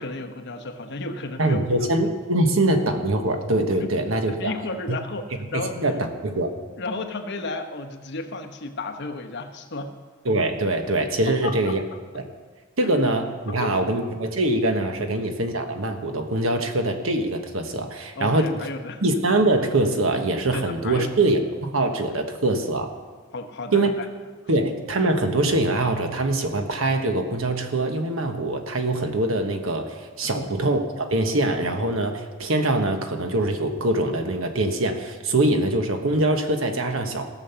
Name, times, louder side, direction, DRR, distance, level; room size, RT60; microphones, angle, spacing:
voice 1, 0.0-1.9 3.8-3.9 4.3-5.3 5.5-5.7 6.8-9.9 11.3-11.8 12.8-12.9 13.5-13.9 18.2-19.0 20.5-21.1 23.3-24.1 30.2-30.5, left 3 dB, 60° left, 5 dB, 1.1 m, -33 dB
voice 2, 1.4-4.5 4.9-5.0 5.5-6.6 10.2-11.8 12.1-12.3 12.8-18.5 19.0-22.9 23.7-24.0 24.5-37.3, right 2 dB, 80° right, 6 dB, 1.3 m, -23 dB
16.5 x 6.3 x 6.9 m, 1.4 s
head